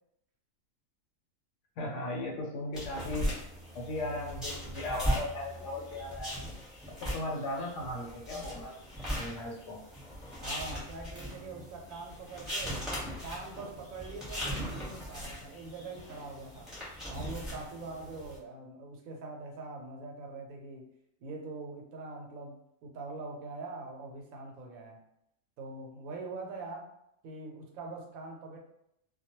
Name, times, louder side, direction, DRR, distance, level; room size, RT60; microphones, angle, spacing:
voice 1, 1.8-3.3 3.7-6.4 7.0-8.7 9.2-9.8, left 1 dB, 70° left, 0 dB, 0.9 m, -37 dB
sound 1, 2.7-18.4, equal, ahead, 0.9 m, -39 dB
voice 2, 10.4-12.8 13.2-16.7 17.1-20.9 21.2-25.0 25.6-26.9 27.2-28.6, right 3 dB, 90° right, 1 dB, 1.0 m, -43 dB
2.2 x 2.2 x 2.9 m, 0.76 s
omnidirectional pair, 1.4 m